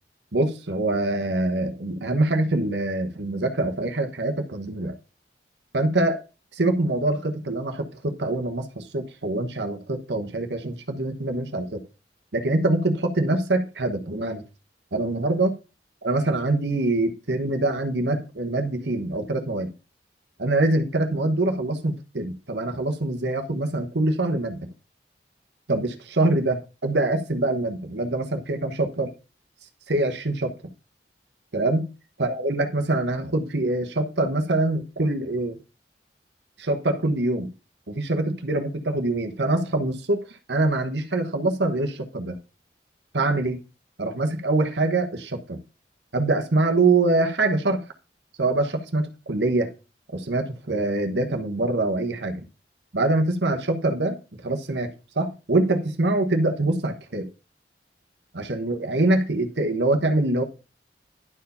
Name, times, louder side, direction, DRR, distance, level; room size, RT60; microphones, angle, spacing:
voice 1, 0.3-4.9 5.7-6.2 6.5-11.8 12.3-14.4 14.9-15.5 16.0-19.7 20.4-24.7 25.7-29.1 29.9-30.5 31.5-31.9 32.2-35.6 36.6-37.5 37.9-42.4 43.1-43.6 44.0-45.6 46.1-47.8 48.4-49.7 50.1-52.4 52.9-57.3 58.3-60.4, right 2 dB, 80° right, 1.2 m, -24 dB
11.0 x 4.7 x 5.5 m
head